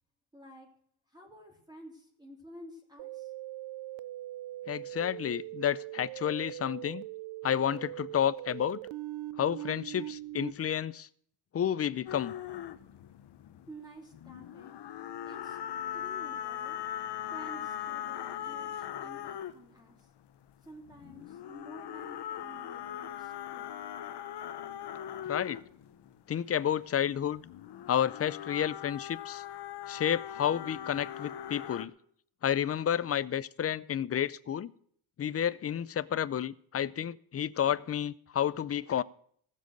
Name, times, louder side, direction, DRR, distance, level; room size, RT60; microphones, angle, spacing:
voice 1, 0.3-0.7 1.1-3.3 13.7-14.7 15.3-15.6 15.9-16.8 17.3-20.1 20.6-23.8, right 1 dB, 10° right, 3.1 m, -51 dB
sound 1, 3.0-10.5, right 16 dB, 65° right, 0.6 m, -41 dB
voice 2, 4.7-7.0 7.4-8.8 9.4-11.1 11.5-12.3 25.3-25.6 26.3-27.4 27.9-29.4 29.9-31.9 32.4-34.7 35.2-39.0, left 9 dB, 30° left, 0.5 m, -30 dB
sound 2, 12.1-13.9 14.1-19.8 20.5-26.2 27.2-31.9, left 10 dB, 55° left, 1.0 m, -40 dB
15.5 x 7.5 x 6.5 m
cardioid pair, 105°, 47 cm